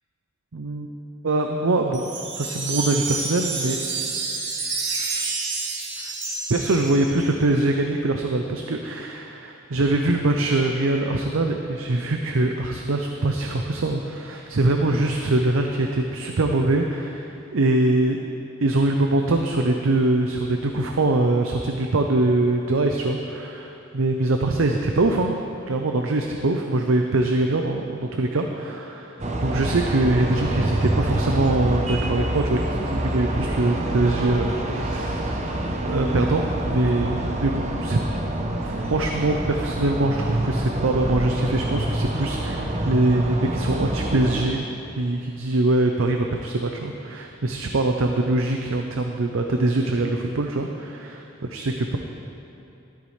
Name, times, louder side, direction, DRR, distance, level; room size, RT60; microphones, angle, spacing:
voice 1, 0.5-0.9 1.2-2.0 2.3-3.8 4.9-5.3 6.0-6.1 6.5-18.3 18.6-25.3 25.7-35.4 35.8-38.0 38.6-44.6 45.0-51.2 51.5-52.0, right 2 dB, 85° right, 3 dB, 0.6 m, -23 dB
Wind chime, 1.9-7.3, right 4 dB, 60° right, 1.6 m, -29 dB
sound 1, 29.2-44.4, right 1 dB, 35° right, 0.8 m, -26 dB
13.0 x 12.5 x 3.3 m, 2.9 s
head